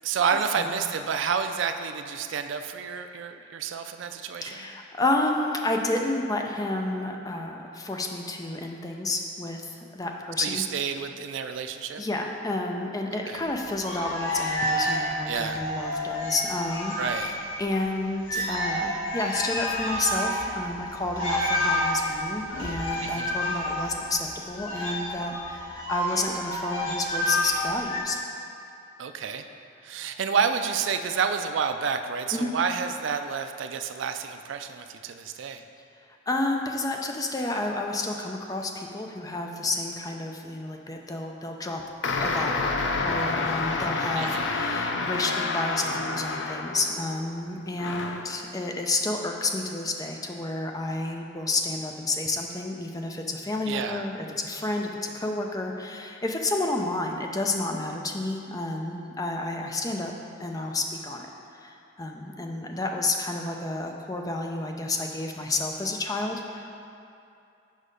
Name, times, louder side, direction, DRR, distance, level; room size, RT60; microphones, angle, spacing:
voice 1, 0.0-4.7 10.4-12.0 13.2-13.4 15.3-15.6 17.0-17.3 18.3-18.5 23.0-23.4 29.0-29.5 29.8-35.6 44.2-44.5 53.7-54.0, right 6 dB, 75° right, 8 dB, 0.4 m, -29 dB
voice 2, 4.4-10.6 12.0-28.2 32.3-32.5 36.3-41.8 42.2-60.1 60.4-61.3 61.5-66.7, left 2 dB, 20° left, 2 dB, 0.4 m, -30 dB
sound 1, 13.7-17.6 17.9-18.0 18.2-28.0, left 1 dB, 85° left, 1.4 m, -29 dB
sound 2, 42.0-47.1 47.8-48.3, left 3 dB, 70° left, 0.5 m, -28 dB
6.5 x 4.9 x 5.1 m, 2.7 s
head